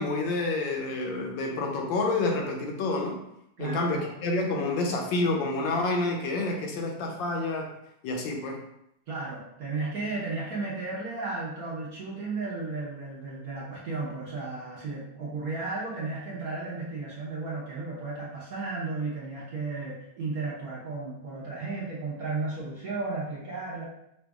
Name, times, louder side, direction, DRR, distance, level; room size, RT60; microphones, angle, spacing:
voice 1, 0.0-3.2 3.6-7.7 8.0-8.6, left 2 dB, 70° left, 1 dB, 1.6 m, -28 dB
voice 2, 3.6-4.1 9.1-23.8, right 3 dB, 55° right, -6 dB, 1.3 m, -34 dB
6.0 x 2.5 x 3.5 m, 0.79 s
omnidirectional pair, 2.2 m